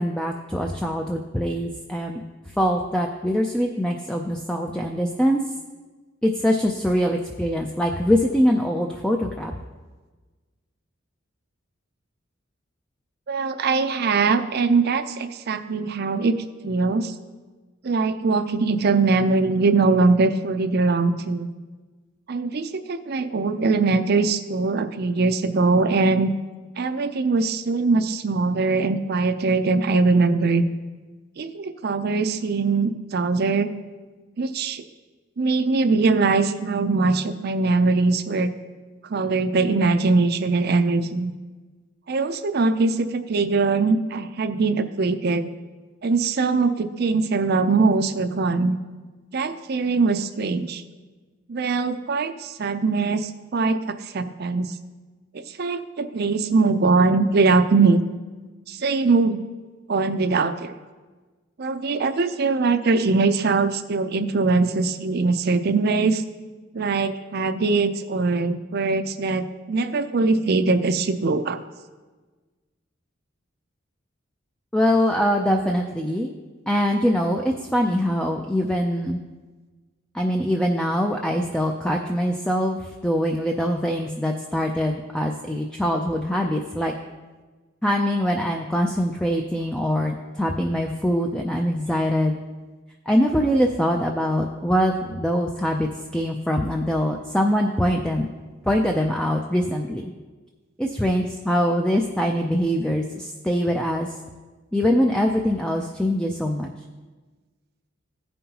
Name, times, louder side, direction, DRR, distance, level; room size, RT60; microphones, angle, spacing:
voice 1, 0.0-2.2 2.6-5.4 6.2-9.5 74.7-76.4 76.7-79.2 80.1-86.9 87.8-92.4 93.1-98.3 98.6-100.1 100.8-104.1 104.7-106.7, equal, 5° left, 1 dB, 0.4 m, -23 dB
voice 2, 13.3-16.4 16.6-17.1 17.8-21.5 22.3-26.3 26.8-30.7 31.4-33.7 34.4-34.8 35.4-38.5 39.0-41.3 42.1-45.5 46.0-48.8 49.3-50.8 51.5-54.7 55.3-58.0 58.7-59.4 59.9-60.7 61.6-66.2 66.7-71.6, right 3 dB, 55° right, 10 dB, 0.5 m, -22 dB
15.0 x 5.4 x 2.9 m, 1.3 s
head